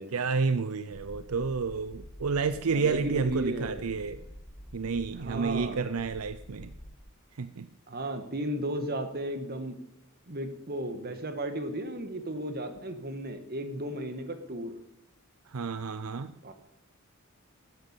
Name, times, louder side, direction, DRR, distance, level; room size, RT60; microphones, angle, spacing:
voice 1, 0.1-4.2 4.7-6.7 7.3-7.7 15.5-16.3, right 5 dB, 90° right, 12 dB, 0.6 m, -30 dB
sound 1, 0.9-7.0, equal, 20° left, 1.5 m, -47 dB
voice 2, 2.7-3.8 5.2-5.8 7.9-9.7 10.3-14.7 16.4-16.5, right 1 dB, 45° right, 8 dB, 1.7 m, -34 dB
13.5 x 9.1 x 8.3 m, 0.86 s
head